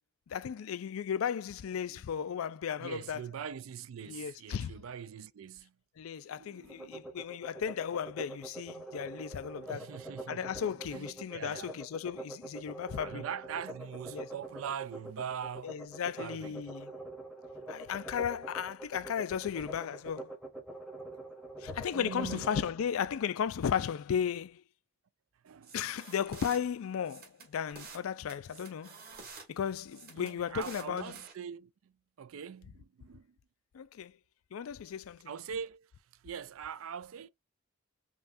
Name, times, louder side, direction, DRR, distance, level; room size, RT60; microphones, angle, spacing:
voice 1, 0.3-3.2 4.0-4.7 6.0-9.9 10.3-13.2 14.1-14.3 15.6-16.9 17.7-20.3 21.6-24.6 25.7-29.0 29.5-31.2 33.7-34.2 34.5-35.3, left 8 dB, 80° left, 0.4 m, -35 dB
voice 2, 2.8-5.7 6.2-7.0 9.6-11.8 13.0-16.6 19.6-19.7 21.9-22.5 25.4-25.8 30.1-31.9 32.2-33.4 35.3-35.9 36.2-37.3, right 7 dB, 75° right, 0.4 m, -43 dB
sound 1, 6.7-22.7, right 2 dB, 5° right, 0.9 m, -45 dB
sound 2, 25.6-26.6 27.0-28.0 28.3-29.5 29.9-31.3, right 4 dB, 50° right, 1.8 m, -49 dB
5.5 x 2.3 x 2.6 m
head